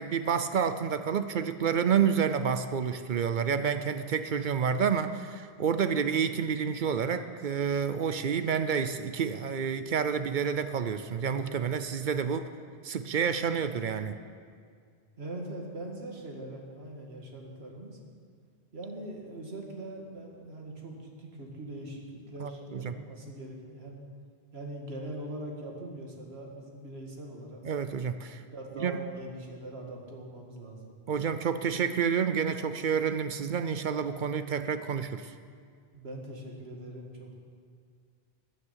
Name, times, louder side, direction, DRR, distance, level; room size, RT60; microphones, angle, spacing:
voice 1, 0.0-12.5 12.8-14.2 22.4-22.9 27.6-28.4 28.8-29.0 31.1-35.3, right 7 dB, 55° right, 10 dB, 0.7 m, -29 dB
voice 2, 15.2-18.0 18.7-24.0 24.5-27.6 28.5-31.0 35.9-37.3, right 1 dB, 80° right, 0 dB, 2.0 m, -42 dB
14.0 x 9.8 x 5.6 m, 2.1 s
omnidirectional pair, 1.1 m